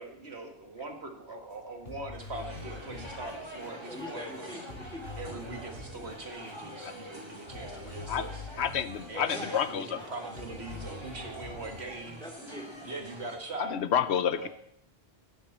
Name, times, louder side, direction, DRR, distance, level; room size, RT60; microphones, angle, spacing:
voice 1, 0.0-4.5 5.2-8.5 9.1-12.2 12.8-13.8 14.3-14.5, right 2 dB, 80° right, 4 dB, 2.2 m, -42 dB
sound 1, 1.5-1.6 1.8-4.4 4.7-10.0 10.3-11.9, left 3 dB, 65° left, 3.6 m, -46 dB
sound 2, 2.3-13.4, equal, 25° right, 2.7 m, -45 dB
voice 2, 3.9-5.1 9.1-11.4 11.7-11.8 12.2-12.7, left 1 dB, 5° left, 1 dB, 2.8 m, -44 dB
voice 3, 8.6-10.0 13.6-14.5, left 8 dB, 85° left, 13 dB, 1.1 m, -29 dB
17.0 x 12.5 x 4.3 m, 0.69 s
omnidirectional pair, 1.1 m